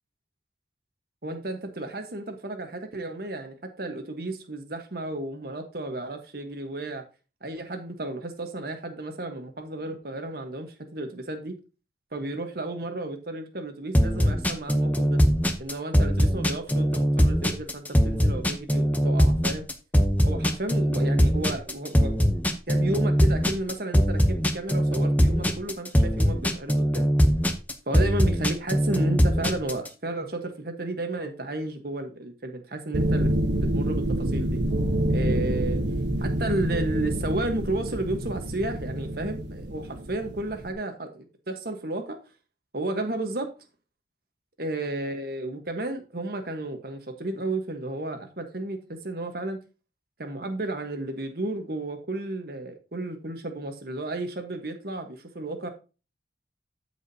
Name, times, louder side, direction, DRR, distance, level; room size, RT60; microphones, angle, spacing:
voice 1, 1.2-7.0 7.4-11.5 12.1-15.2 15.6-19.7 20.3-22.2 22.7-27.1 27.9-33.3 33.7-34.6 35.1-35.8 36.2-42.2 42.7-43.5 44.6-49.6 50.2-55.7, right 2 dB, 55° right, 1.3 m, -33 dB
sound 1, 13.9-29.9, equal, 10° left, 0.8 m, -21 dB
sound 2, 32.9-40.7, right 1 dB, 85° right, 1.0 m, -27 dB
13.5 x 4.9 x 2.8 m
head